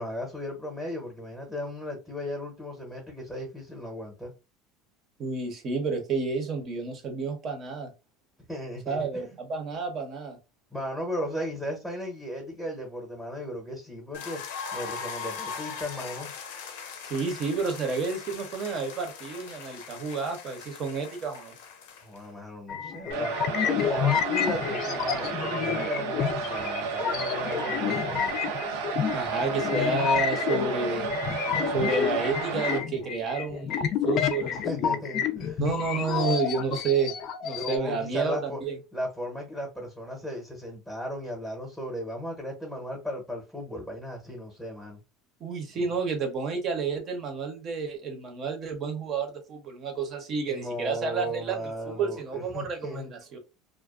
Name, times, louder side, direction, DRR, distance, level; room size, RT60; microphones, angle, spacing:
voice 1, 0.0-4.3 8.5-9.2 10.7-14.4 14.7-16.3 22.0-23.3 23.6-28.3 34.4-35.6 37.5-38.6 38.9-45.0 45.7-45.9 50.5-53.1, equal, ahead, 0.9 m, -36 dB
voice 2, 5.2-7.9 8.9-10.4 17.1-21.5 29.1-31.1 31.7-35.0 35.6-37.1 37.4-38.8 45.4-53.4, right 5 dB, 40° right, 0.8 m, -30 dB
sound 1, 14.1-22.3, left 6 dB, 85° left, 0.7 m, -40 dB
sound 2, 22.7-37.8, left 9 dB, 45° left, 0.4 m, -29 dB
sound 3, 23.1-32.8, right 5 dB, 80° right, 0.6 m, -32 dB
2.4 x 2.2 x 2.3 m
supercardioid pair, 130°, 0 cm